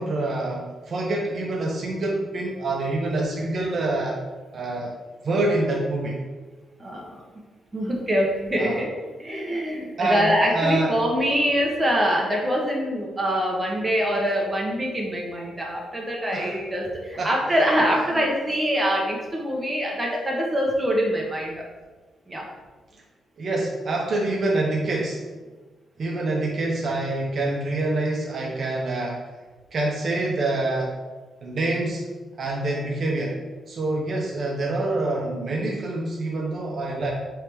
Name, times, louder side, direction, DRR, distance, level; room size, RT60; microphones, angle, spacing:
voice 1, 0.0-4.2 4.5-4.9 5.2-6.2 8.6-8.8 9.5-9.6 10.0-10.9 16.3-16.6 17.2-17.6 18.1-18.2 23.4-25.2 26.0-29.2 29.7-31.0 31.4-32.1 32.4-33.4 33.7-37.1, right 2 dB, 45° right, -2 dB, 0.7 m, -26 dB
voice 2, 6.8-7.2 7.7-21.6 22.3-22.5, equal, 15° right, -2 dB, 0.9 m, -24 dB
4.5 x 3.3 x 3.4 m, 1.3 s
wide cardioid pair, 150°, 0 cm